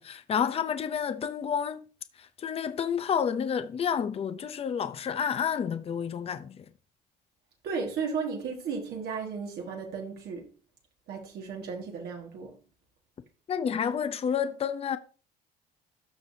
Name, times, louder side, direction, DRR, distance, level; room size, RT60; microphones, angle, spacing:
voice 1, 0.0-1.8 2.2-6.6 13.5-15.0, left 7 dB, 35° left, 0.7 m, -30 dB
voice 2, 7.6-10.5 11.1-12.5, right 5 dB, 70° right, 1.9 m, -34 dB
13.5 x 4.8 x 2.8 m
cardioid pair, 110°, 17 cm